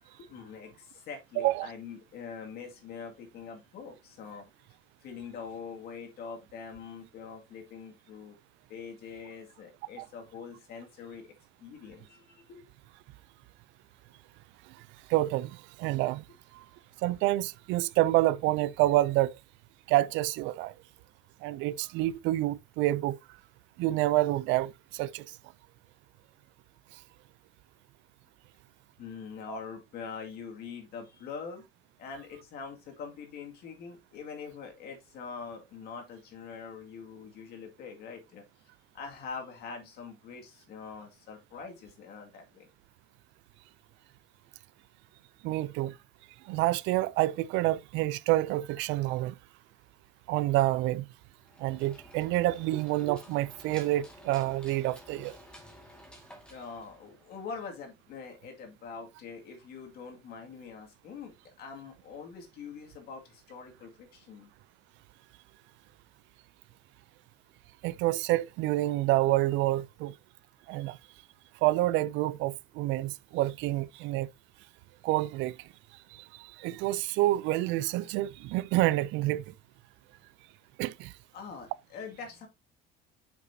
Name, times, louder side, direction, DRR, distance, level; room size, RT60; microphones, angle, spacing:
voice 1, 0.0-4.5 5.0-8.4 8.7-11.3 11.6-12.7 29.0-31.7 32.0-38.4 38.9-42.7 56.5-64.5 81.3-82.5, left 5 dB, 55° left, 2.2 m, -44 dB
voice 2, 1.4-1.7 10.0-10.1 15.1-16.2 17.0-19.4 19.9-20.7 21.4-23.2 23.8-25.3 29.5-29.6 45.4-45.9 46.5-49.3 50.3-51.0 51.6-55.4 67.8-70.1 70.7-71.0 71.6-74.3 75.0-75.6 76.1-79.5 80.8-81.1, right 16 dB, 90° right, 0.4 m, -28 dB
sound 1, 51.4-57.5, left 1 dB, 5° left, 1.9 m, -53 dB
7.8 x 6.0 x 2.7 m
cardioid pair, 175°, 19 cm